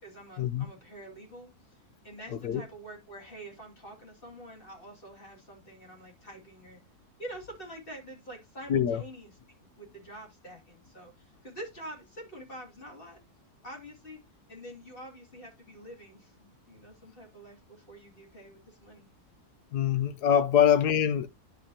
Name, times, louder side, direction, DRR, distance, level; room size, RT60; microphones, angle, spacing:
voice 1, 0.0-6.8 7.2-9.3 9.6-13.2 13.6-14.2 14.5-19.1 20.4-20.5, right 1 dB, 35° left, 2.9 m, -46 dB
voice 2, 8.7-9.0 19.7-21.3, left 9 dB, 90° left, 1.3 m, -24 dB
10.5 x 5.7 x 2.8 m
omnidirectional pair, 1.6 m